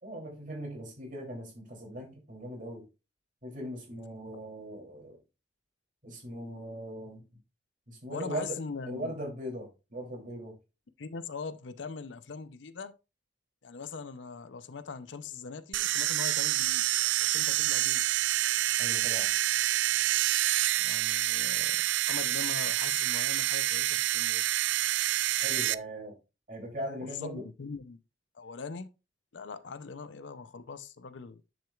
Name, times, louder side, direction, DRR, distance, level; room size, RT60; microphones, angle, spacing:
voice 1, 0.0-2.9 3.4-5.2 6.0-7.2 7.9-8.6 8.9-10.5 18.8-19.3 25.4-26.1 26.5-27.4, right 1 dB, 45° right, 3.0 m, -39 dB
voice 2, 8.1-9.1 11.0-12.9 13.6-16.8 17.2-18.0 20.8-24.4 27.1-28.0 28.3-28.9 29.3-31.4, left 5 dB, 80° left, 0.6 m, -41 dB
sound 1, 15.7-25.7, right 15 dB, 75° right, 0.3 m, -27 dB
10.0 x 6.1 x 2.4 m
head